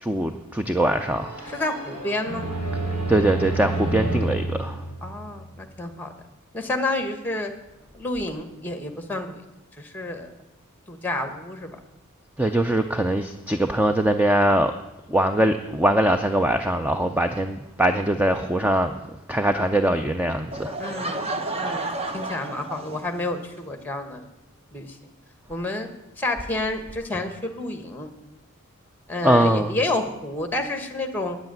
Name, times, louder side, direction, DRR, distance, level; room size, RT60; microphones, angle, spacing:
voice 1, 0.0-1.5 3.1-4.8 12.4-14.7 15.1-18.9 19.3-20.7 29.2-29.7, right 1 dB, 5° right, 7 dB, 0.4 m, -22 dB
sound 1, 0.9-5.7, right 2 dB, 85° right, 3.0 m, -30 dB
voice 2, 1.5-2.5 5.0-6.1 6.5-7.5 7.9-9.4 9.8-10.3 10.9-11.8 20.8-21.3 21.5-24.3 24.7-25.0 25.5-25.9 26.2-28.1 29.1-31.4, left 2 dB, 10° left, 6 dB, 1.2 m, -29 dB
Laughter / Crowd, 20.5-23.3, right 2 dB, 25° right, 0.8 m, -31 dB
9.6 x 8.2 x 9.1 m, 0.95 s
head